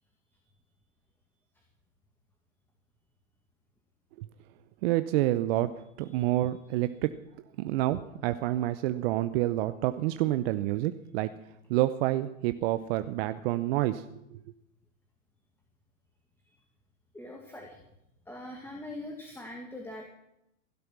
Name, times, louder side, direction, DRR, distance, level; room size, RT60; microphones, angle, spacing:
voice 1, 4.8-7.1 7.6-11.3 11.7-14.0, right 15 dB, 50° right, 11 dB, 0.8 m, -28 dB
voice 2, 17.1-17.8 18.3-20.0, left 1 dB, 5° left, 1 dB, 2.1 m, -42 dB
16.5 x 12.0 x 6.1 m, 0.81 s
hypercardioid pair, 115°, 40 cm